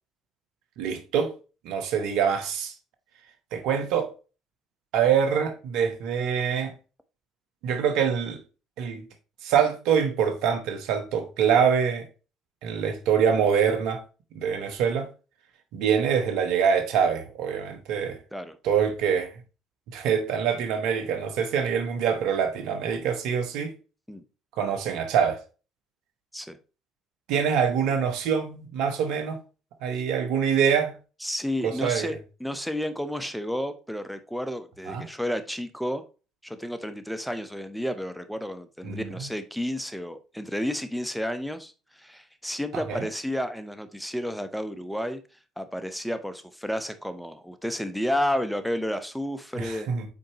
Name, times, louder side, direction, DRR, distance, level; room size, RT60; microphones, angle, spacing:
voice 1, 0.8-1.3 1.6-2.7 3.5-4.1 4.9-6.7 7.6-8.4 8.8-9.1 9.4-12.1 12.6-14.0 14.3-15.1 15.7-18.2 18.6-19.3 19.9-23.7 24.6-25.4 27.3-29.4 29.8-30.9 31.6-32.1 34.9-35.0 38.8-39.3 42.7-43.1 49.6-50.1, right 7 dB, 75° right, 1.3 m, -25 dB
voice 2, 31.2-36.0 36.4-45.2 45.6-49.9, equal, ahead, 1.1 m, -31 dB
8.0 x 4.4 x 3.1 m
hypercardioid pair, 60°, 0 cm